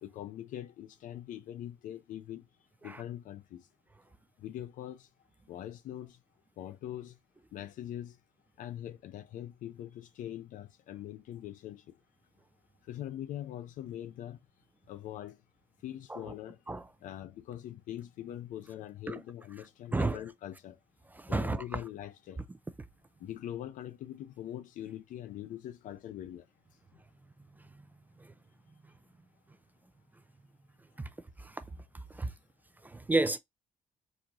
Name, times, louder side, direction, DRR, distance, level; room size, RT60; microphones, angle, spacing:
voice 1, 0.0-2.5 2.8-3.7 4.4-5.1 5.5-6.2 6.6-7.2 7.5-8.2 8.6-12.0 12.8-14.4 14.9-15.4 15.8-16.6 17.0-20.8 21.3-22.4 23.2-26.5 26.9-27.0 32.2-32.3, left 12 dB, 75° left, 0.7 m, -42 dB
voice 2, 21.1-21.6 31.4-31.6 32.1-32.3 32.8-33.4, right 2 dB, 15° right, 0.3 m, -31 dB
4.2 x 2.5 x 2.9 m
cardioid pair, 135°, 14 cm